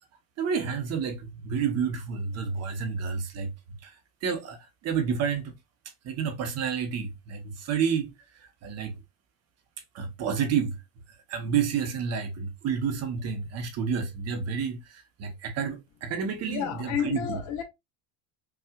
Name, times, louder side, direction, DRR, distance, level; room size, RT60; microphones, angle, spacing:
voice 1, 0.4-3.5 3.8-5.5 6.0-9.0 9.9-10.8 11.3-17.4, right 6 dB, 40° right, 0.9 m, -30 dB
voice 2, 16.4-17.6, left 8 dB, 45° left, 0.9 m, -30 dB
5.7 x 2.4 x 2.3 m
cardioid pair, 150°, 40 cm